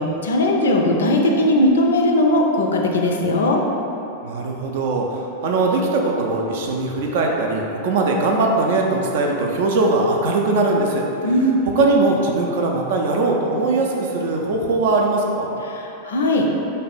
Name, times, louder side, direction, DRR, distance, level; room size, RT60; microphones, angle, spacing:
voice 1, 0.0-3.6 11.2-11.6 15.6-16.5, left 1 dB, 65° left, 1 dB, 0.4 m, -18 dB
voice 2, 4.2-11.1 11.8-15.5, right 3 dB, 55° right, 0 dB, 0.4 m, -20 dB
3.3 x 2.2 x 4.1 m, 2.9 s
figure-of-eight pair, 90°, 0 cm